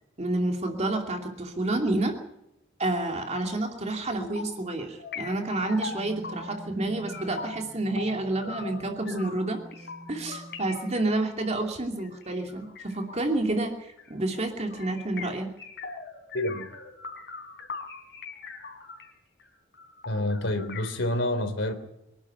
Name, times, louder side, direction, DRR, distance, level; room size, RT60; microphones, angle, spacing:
voice 1, 0.2-2.1 2.8-9.6 10.1-15.5, right 2 dB, 35° right, 3 dB, 2.7 m, -29 dB
sound 1, 4.2-4.6 5.0-6.7 7.0-19.1 19.4-19.5 19.7-20.9, left 4 dB, 55° left, 4.0 m, -41 dB
sound 2, 5.3-11.2, equal, 85° right, 2.3 m, -47 dB
voice 2, 16.3-16.7 20.1-21.7, left 1 dB, 70° left, 8 dB, 3.5 m, -28 dB
25.5 x 11.5 x 9.7 m, 0.88 s
head